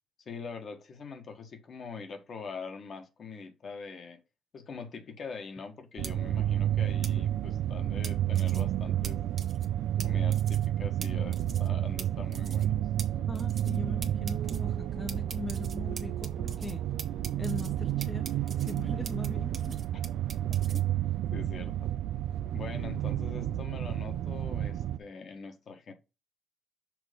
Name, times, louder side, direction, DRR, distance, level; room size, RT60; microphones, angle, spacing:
voice 1, 0.2-4.2 4.5-9.2 10.0-12.8 20.5-21.0 21.3-21.9 22.5-25.9, left 5 dB, 55° left, 1.5 m, -43 dB
sound 1, 6.0-6.1 7.0-7.1 8.0-8.6 9.0-9.1 9.4-9.7 10.0-10.1 10.3-10.7 11.0-11.1 11.3-11.7 12.0-12.1 12.3-12.7 13.0-13.1 13.3-13.8 14.0-14.6 15.1-16.7 17.0-17.7 18.0-19.3 19.5-20.8, right 5 dB, 45° right, 1.1 m, -42 dB
sound 2, 6.0-25.0, right 12 dB, 80° right, 0.4 m, -30 dB
voice 2, 13.3-16.8 17.4-18.3 18.6-19.8, left 3 dB, 20° left, 0.8 m, -40 dB
6.1 x 3.2 x 5.1 m
cardioid pair, 90°, 0 cm